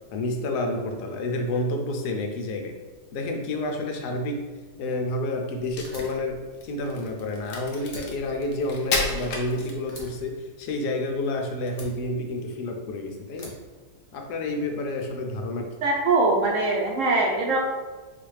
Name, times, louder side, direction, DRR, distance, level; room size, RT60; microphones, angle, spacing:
voice 1, 0.1-2.8 3.1-4.5 4.8-13.5 14.1-15.8, left 2 dB, 85° left, 3 dB, 1.2 m, -29 dB
Crack, 5.6-10.2, left 3 dB, 65° left, 0.9 m, -32 dB
Fire, 5.8-7.5 7.8-9.5 9.9-11.2 11.7-12.8 13.3-14.5, equal, 40° left, 0.5 m, -46 dB
voice 2, 15.8-17.6, right 3 dB, 70° right, -2 dB, 0.8 m, -22 dB
4.2 x 2.5 x 3.1 m, 1.3 s
omnidirectional pair, 1.7 m